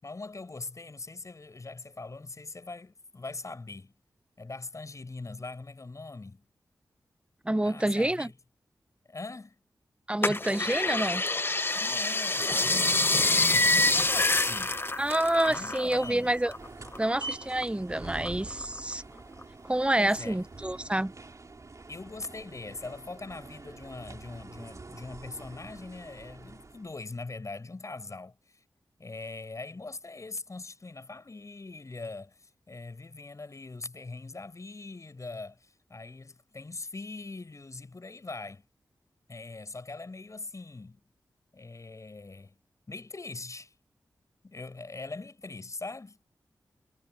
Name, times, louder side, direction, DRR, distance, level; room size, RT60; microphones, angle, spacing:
voice 1, 0.0-3.9 4.4-6.4 7.6-8.3 9.0-9.6 10.6-10.7 11.7-14.8 15.5-16.3 20.0-20.4 21.9-28.6 29.0-38.6 39.3-41.0 41.5-42.6 42.9-43.7 44.4-46.2, left 3 dB, 45° left, 6.1 m, -41 dB
voice 2, 7.4-8.3 10.1-11.2 15.0-16.5 17.0-19.0 19.6-21.1, right 1 dB, 15° right, 0.9 m, -28 dB
sound 1, 10.2-16.1 16.3-17.6 18.1-18.9 19.4-19.5, left 2 dB, 30° left, 1.0 m, -26 dB
sound 2, 13.4-26.9, right 3 dB, 45° right, 3.0 m, -46 dB
cardioid pair, 50°, 7 cm